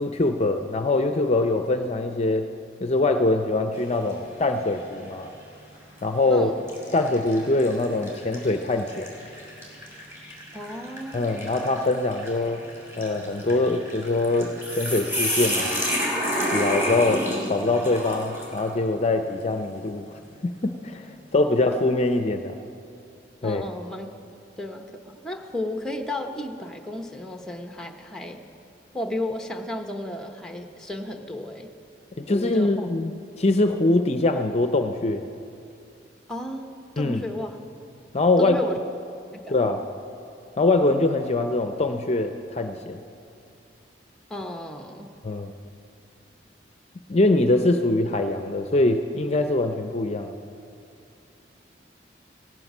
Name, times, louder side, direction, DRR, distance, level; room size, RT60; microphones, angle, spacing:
voice 1, 0.0-2.5 2.8-5.3 6.0-6.5 6.9-9.1 11.1-12.6 13.0-15.8 16.4-20.1 20.4-22.6 23.4-23.6 32.2-33.1 33.4-35.3 37.0-37.2 38.1-38.6 39.5-39.8 40.6-43.0 45.2-45.5 47.1-50.3, left 2 dB, 35° left, 7 dB, 0.5 m, -23 dB
sound 1, 3.7-4.2 4.7-4.9 5.8-6.1 6.7-18.7, equal, 15° right, 2.9 m, -30 dB
voice 2, 10.5-11.4 23.4-24.1 24.6-28.4 28.9-31.7 32.3-32.9 36.3-37.6 38.4-38.8 39.3-39.5 44.3-45.1, left 1 dB, 5° left, 5 dB, 0.8 m, -33 dB
16.5 x 9.7 x 6.0 m, 2.5 s
head